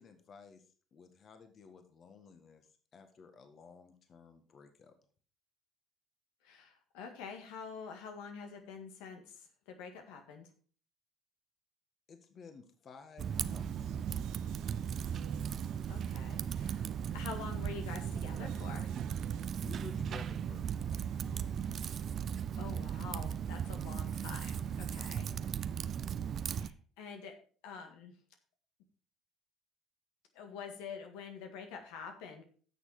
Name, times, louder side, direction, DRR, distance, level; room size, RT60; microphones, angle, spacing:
voice 1, 0.0-4.9 12.1-14.0 19.6-22.1, left 5 dB, 50° left, 7 dB, 1.6 m, -54 dB
voice 2, 6.4-10.5 15.9-18.9 22.6-25.3 26.4-27.3 27.6-28.2 30.3-32.4, left 6 dB, 85° left, 4 dB, 1.7 m, -47 dB
Typing, 13.2-26.7, right 8 dB, 50° right, 0.6 m, -37 dB
sound 1, 13.3-21.8, right 9 dB, 80° right, 1.0 m, -54 dB
9.9 x 6.7 x 4.9 m, 0.42 s
supercardioid pair, 80°, 0 cm